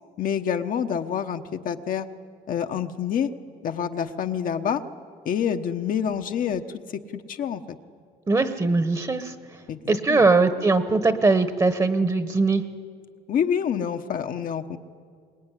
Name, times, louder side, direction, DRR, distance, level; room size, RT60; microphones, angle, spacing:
voice 1, 0.2-2.1 2.5-3.3 3.6-4.8 5.2-6.6 6.9-7.8 9.7-10.3 13.3-14.8, left 8 dB, 55° left, 6 dB, 1.1 m, -27 dB
voice 2, 8.3-9.3 9.9-12.6, right 3 dB, 20° right, 10 dB, 1.2 m, -21 dB
23.5 x 20.5 x 10.0 m, 2.2 s
cardioid pair, 110°, 17 cm